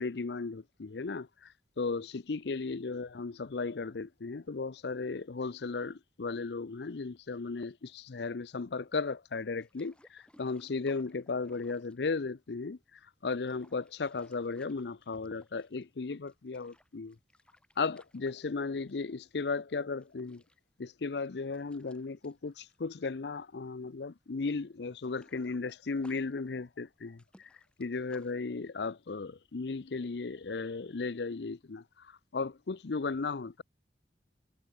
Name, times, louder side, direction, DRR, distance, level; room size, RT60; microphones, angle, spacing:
voice 1, 0.0-17.2 17.8-20.4 20.8-27.5 27.8-33.6, left 4 dB, 70° left, 0.6 m, -36 dB
sound 1, 9.6-12.7 13.1-16.0 16.3-19.1 19.4-19.6 20.0-23.8 24.0-24.3 24.6-28.4, left 1 dB, 5° left, 6.1 m, -65 dB
head